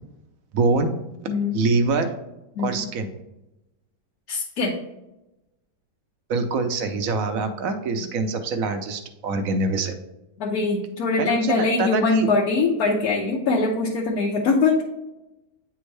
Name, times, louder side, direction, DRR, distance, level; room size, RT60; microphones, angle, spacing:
voice 1, 0.5-1.0 1.5-2.1 2.6-3.1 6.3-9.9 11.2-12.3, right 3 dB, 65° right, 7 dB, 1.0 m, -24 dB
voice 2, 1.3-1.6 2.5-2.9 4.3-4.8 10.4-14.8, left 3 dB, 65° left, -3 dB, 1.2 m, -22 dB
9.0 x 3.5 x 3.2 m, 0.96 s
omnidirectional pair, 1.8 m